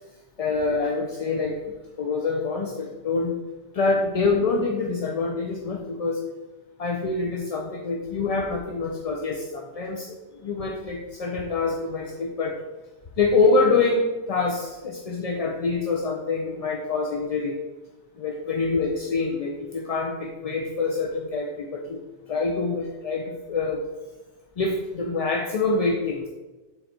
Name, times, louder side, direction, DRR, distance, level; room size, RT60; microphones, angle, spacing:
voice 1, 0.4-1.5 2.0-3.3 3.7-6.2 6.8-10.2 10.4-12.6 13.2-17.6 18.2-22.0 22.3-23.8 24.6-26.3, left 3 dB, 40° left, 0 dB, 0.6 m, -25 dB
7.8 x 3.9 x 4.4 m, 1.2 s
omnidirectional pair, 1.2 m